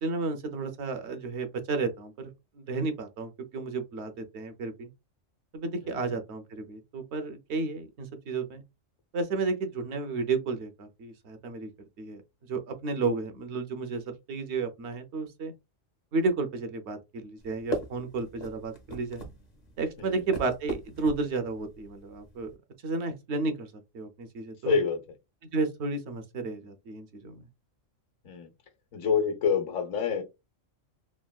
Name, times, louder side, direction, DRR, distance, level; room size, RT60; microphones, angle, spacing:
voice 1, 0.0-2.3 2.6-4.9 5.5-8.6 9.1-11.7 12.0-12.2 12.5-14.0 14.3-15.5 16.1-19.3 19.8-22.5 22.8-24.8 25.5-27.5, right 3 dB, 65° right, 0.9 m, -32 dB
sound 1, 17.4-22.6, equal, 40° left, 0.7 m, -40 dB
voice 2, 24.6-25.0 28.2-28.5 28.9-30.2, left 6 dB, 90° left, 1.2 m, -27 dB
3.4 x 2.2 x 2.3 m
omnidirectional pair, 1.3 m